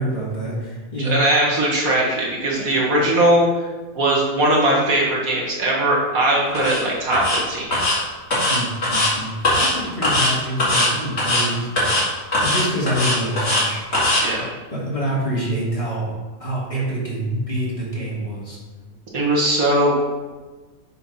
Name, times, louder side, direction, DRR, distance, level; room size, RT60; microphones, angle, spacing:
voice 1, 0.0-1.2 2.5-2.7 8.5-12.0 12.4-13.8 14.7-16.1 16.4-18.6, right 1 dB, 25° left, -7 dB, 2.3 m, -26 dB
voice 2, 1.0-3.5 4.0-7.7 14.2-14.5 19.1-20.0, right 1 dB, 80° right, -4 dB, 2.1 m, -19 dB
sound 1, 6.5-6.8 7.1-7.4 7.7-8.0 8.3-9.1 9.4-9.7 10.0-10.3 10.6-10.9 11.2-11.4 11.8-12.0 12.3-13.6 13.9-14.2, left 1 dB, 50° left, 2.5 m, -19 dB
6.9 x 4.4 x 5.4 m, 1.3 s
omnidirectional pair, 1.5 m